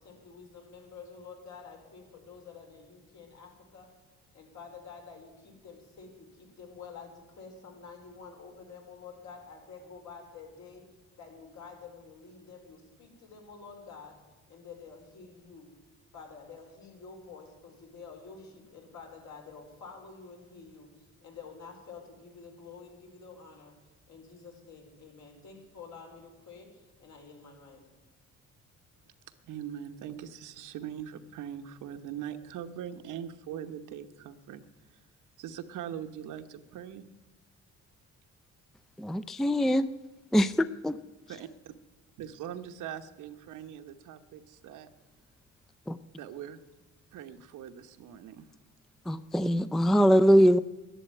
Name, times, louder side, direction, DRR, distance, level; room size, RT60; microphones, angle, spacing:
voice 1, 0.0-3.9 4.3-10.9 11.2-14.2 14.5-15.7 16.1-23.7 24.1-27.8, left 5 dB, 65° left, 2 dB, 4.8 m, -49 dB
voice 2, 29.4-34.7 35.4-37.0 41.3-41.7 42.2-44.9 46.2-46.6 47.1-48.5, right 9 dB, 85° right, 9 dB, 1.1 m, -41 dB
voice 3, 39.0-39.9 40.3-41.0 45.9-46.0 49.1-50.6, equal, ahead, 14 dB, 0.4 m, -22 dB
11.5 x 11.0 x 9.2 m, 1.1 s
cardioid pair, 90°, 30 cm